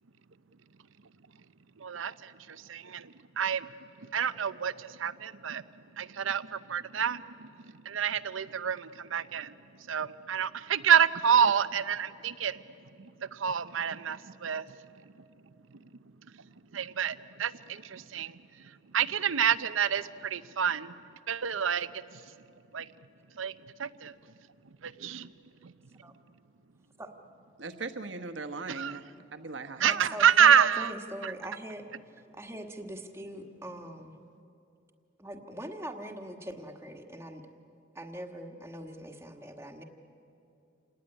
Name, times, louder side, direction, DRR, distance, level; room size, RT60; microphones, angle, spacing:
voice 1, 1.8-3.7 4.0-5.6 5.9-14.8 15.7-20.9 21.3-22.3 22.7-22.9 23.3-24.1 24.8-25.3 25.6-26.0 28.7-29.0 29.8-30.9 31.2-31.3, right 8 dB, 85° right, 14 dB, 0.7 m, -29 dB
voice 2, 27.6-29.0 29.3-30.2, right 4 dB, 65° right, 7 dB, 1.2 m, -38 dB
voice 3, 29.8-31.8 32.3-34.1 35.2-37.4 37.9-39.8, equal, 15° right, 4 dB, 1.5 m, -42 dB
27.5 x 18.5 x 10.0 m, 2.7 s
head